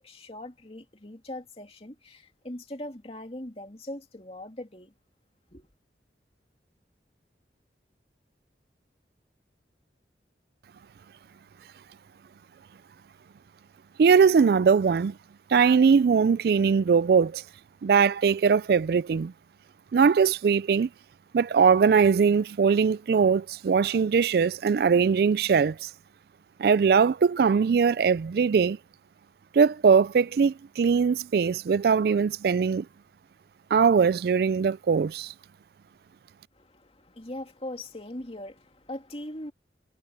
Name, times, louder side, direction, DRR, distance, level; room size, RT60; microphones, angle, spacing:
voice 1, 0.0-4.9 5.5-5.7 36.5-39.5, left 1 dB, 35° left, 2.6 m, -40 dB
voice 2, 14.0-15.2 15.5-17.4 17.8-19.3 19.9-20.9 21.3-25.9 26.6-28.8 29.5-32.9 33.7-35.3, right 6 dB, 60° right, 0.3 m, -21 dB
head